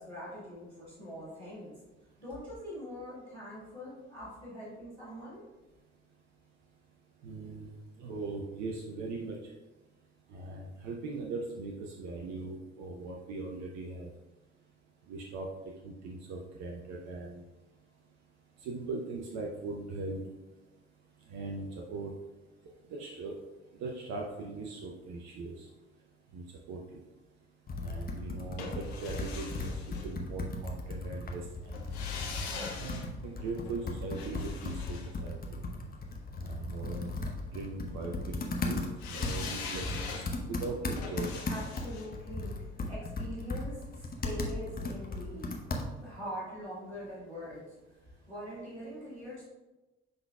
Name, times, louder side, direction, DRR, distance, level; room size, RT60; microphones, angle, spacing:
voice 1, 0.0-1.7 2.2-5.4 41.5-45.6 46.0-47.6 48.3-49.5, equal, 85° right, -7 dB, 1.7 m, -43 dB
voice 2, 7.2-7.7 8.0-9.4 10.3-14.1 15.1-15.5 15.8-17.4 18.6-20.2 21.3-22.1 22.9-23.3 23.8-25.7 26.3-27.0 27.8-29.7 30.0-31.7 32.8-35.6 36.4-37.1 37.5-38.8 39.1-41.3, right 3 dB, 55° right, -1 dB, 0.8 m, -40 dB
Computer keyboard, 27.7-46.2, left 2 dB, 30° left, 0.9 m, -37 dB
sound 1, 28.6-30.7 31.7-36.0 39.0-44.0 44.3-44.4, left 5 dB, 75° left, 0.7 m, -43 dB
10.0 x 4.0 x 2.3 m, 1.1 s
figure-of-eight pair, 45°, 32 cm